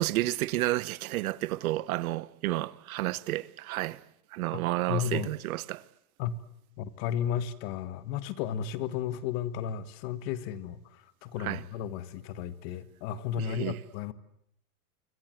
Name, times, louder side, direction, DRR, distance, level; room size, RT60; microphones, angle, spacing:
voice 1, 0.0-4.0 4.3-5.8 11.4-11.6 13.4-13.8, right 17 dB, 70° right, 1.0 m, -31 dB
voice 2, 4.9-5.3 6.2-6.4 6.8-14.1, left 9 dB, 45° left, 1.7 m, -33 dB
26.0 x 26.0 x 7.9 m
supercardioid pair, 165°, 44 cm